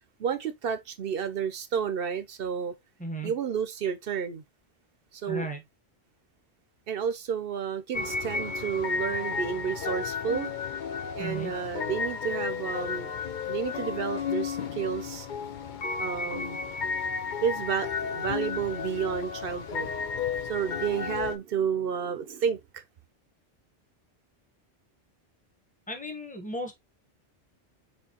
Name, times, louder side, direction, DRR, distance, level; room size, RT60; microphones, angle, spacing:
voice 1, 0.2-2.7 3.2-4.4 5.1-5.5 6.9-10.5 11.2-13.1 13.5-15.3 16.0-16.6 17.4-19.9 20.5-22.8, right 7 dB, 60° right, 0.8 m, -31 dB
voice 2, 3.0-3.3 5.3-5.6 11.2-11.5 25.9-26.7, right 1 dB, 10° left, 1.0 m, -35 dB
sound 1, 7.9-21.4, left 6 dB, 50° left, 0.7 m, -33 dB
4.4 x 4.2 x 2.9 m
omnidirectional pair, 1.2 m